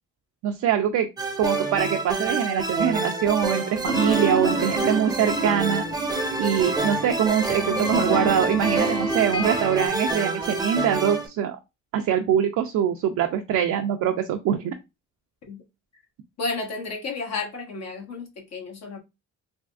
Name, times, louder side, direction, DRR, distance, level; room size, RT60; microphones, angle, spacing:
voice 1, 0.4-1.1 1.4-5.8 6.4-11.6 11.9-14.8, right 9 dB, 70° right, 0.5 m, -23 dB
sound 1, 1.2-11.3, right 3 dB, 15° right, 0.5 m, -28 dB
sound 2, 3.8-9.9, right 1 dB, 15° left, 0.8 m, -29 dB
voice 2, 16.4-19.0, left 3 dB, 60° left, 1.1 m, -32 dB
3.4 x 2.4 x 2.4 m
cardioid pair, 90°, 30 cm